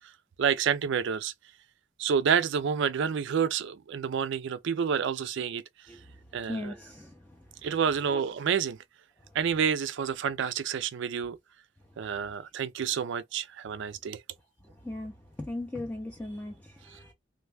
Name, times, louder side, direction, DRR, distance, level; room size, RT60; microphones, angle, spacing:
voice 1, 0.4-1.3 2.0-5.6 6.3-6.7 7.6-8.8 9.3-11.4 12.0-14.2, right 7 dB, 60° right, 0.4 m, -29 dB
voice 2, 6.5-7.4 8.1-8.2 14.8-17.1, left 1 dB, 5° left, 0.4 m, -38 dB
3.2 x 2.2 x 3.3 m
head